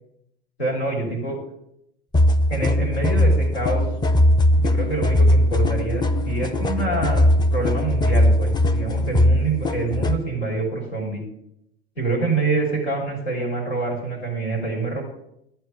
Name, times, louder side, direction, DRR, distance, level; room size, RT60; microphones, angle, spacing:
voice 1, 0.6-1.4 2.5-3.8 4.6-11.2 12.0-15.0, right 3 dB, 85° left, 0 dB, 3.6 m, -26 dB
sound 1, 2.1-10.2, left 1 dB, 15° left, 0.6 m, -19 dB
12.0 x 4.6 x 7.7 m, 0.79 s
hypercardioid pair, 80°, 32 cm